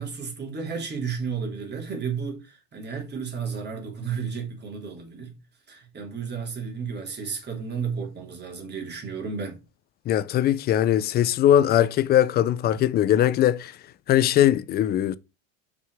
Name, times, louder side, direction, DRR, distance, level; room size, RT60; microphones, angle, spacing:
voice 1, 0.0-5.3 5.7-9.6, right 6 dB, 25° right, 2.9 m, -32 dB
voice 2, 10.1-13.7 14.1-15.2, left 11 dB, 25° left, 0.3 m, -20 dB
6.0 x 5.8 x 4.7 m
supercardioid pair, 130°, 40 cm